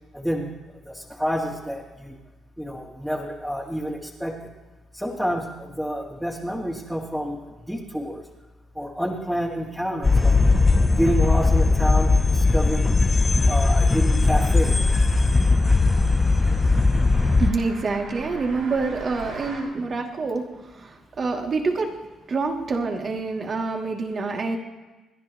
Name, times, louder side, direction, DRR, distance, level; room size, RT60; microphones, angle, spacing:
voice 1, 0.1-0.5 0.9-2.2 2.6-4.4 4.9-7.4 7.7-8.2 8.7-10.4 11.0-12.9 13.5-14.7, equal, 5° right, -4 dB, 2.4 m, -28 dB
sound 1, 10.0-17.5, left 3 dB, 25° left, 0.8 m, -19 dB
sound 2, 13.2-19.6, right 3 dB, 65° right, 5.3 m, -40 dB
voice 2, 17.4-21.9 22.3-24.6, right 3 dB, 45° right, 1 dB, 2.7 m, -27 dB
29.5 x 11.0 x 3.1 m, 1.2 s
supercardioid pair, 70°, 0 cm